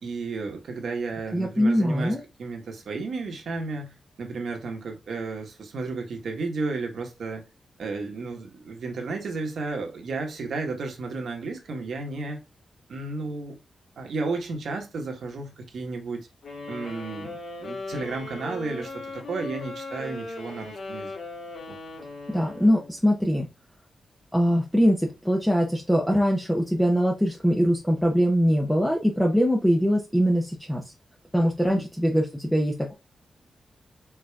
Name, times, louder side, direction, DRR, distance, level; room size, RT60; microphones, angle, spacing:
voice 1, 0.0-7.5 7.8-12.4 12.9-13.6 14.0-16.3 16.7-21.1 21.7-21.8 31.7-31.9, right 3 dB, 70° right, 1.3 m, -33 dB
voice 2, 1.3-2.2 22.3-23.5 24.3-30.8 31.3-32.9, equal, 5° left, 0.8 m, -22 dB
sound 1, 16.4-23.0, left 3 dB, 75° left, 2.2 m, -38 dB
4.8 x 3.9 x 2.3 m
wide cardioid pair, 135°, 0 cm